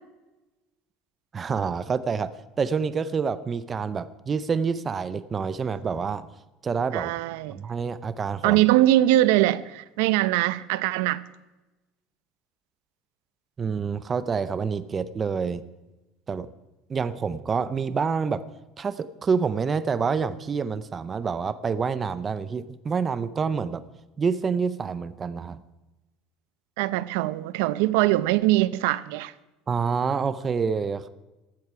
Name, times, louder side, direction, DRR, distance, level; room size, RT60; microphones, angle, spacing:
voice 1, 1.3-6.3 6.6-7.1 7.6-8.6 13.6-15.6 16.3-16.5 16.9-18.4 18.8-23.8 24.2-25.6 29.7-31.1, right 5 dB, 20° right, 0.5 m, -27 dB
voice 2, 6.9-7.6 8.4-11.2 26.8-29.3, right 15 dB, 85° right, 0.6 m, -22 dB
15.5 x 13.0 x 4.8 m
cardioid pair, 175°, 0 cm